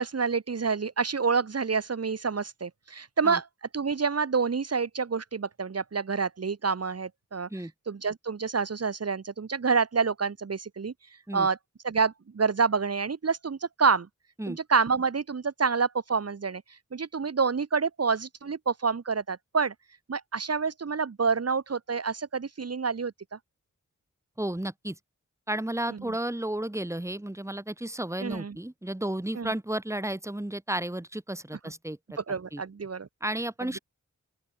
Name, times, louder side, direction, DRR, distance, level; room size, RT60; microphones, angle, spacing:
voice 1, 0.0-3.5 3.7-7.5 7.9-10.9 11.3-11.6 11.8-14.1 14.5-16.6 16.9-19.7 20.1-23.1 25.9-26.0 28.2-28.5 29.4-29.5 32.3-33.1, right 5 dB, 55° right, 2.5 m, -28 dB
voice 2, 24.4-25.0 25.5-32.2 32.5-32.6 33.2-33.8, right 1 dB, 10° right, 4.5 m, -33 dB
open air
wide cardioid pair, 105°, 30 cm